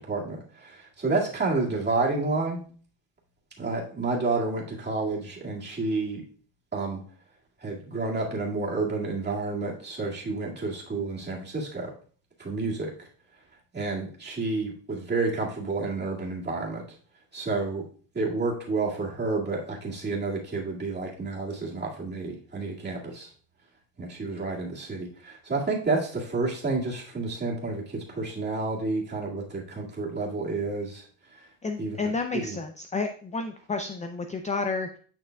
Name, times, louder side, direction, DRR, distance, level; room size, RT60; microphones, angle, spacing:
voice 1, 0.0-2.6 3.6-6.2 6.7-7.0 7.6-11.9 12.4-13.1 13.7-16.8 17.3-17.8 18.1-23.3 24.0-31.0 31.3-31.5 31.8-32.0 32.3-32.6, right 3 dB, 25° right, -4 dB, 2.0 m, -30 dB
voice 2, 31.6-35.0, left 3 dB, 20° left, 6 dB, 0.4 m, -31 dB
9.0 x 6.1 x 2.2 m, 0.44 s
cardioid pair, 130°, 44 cm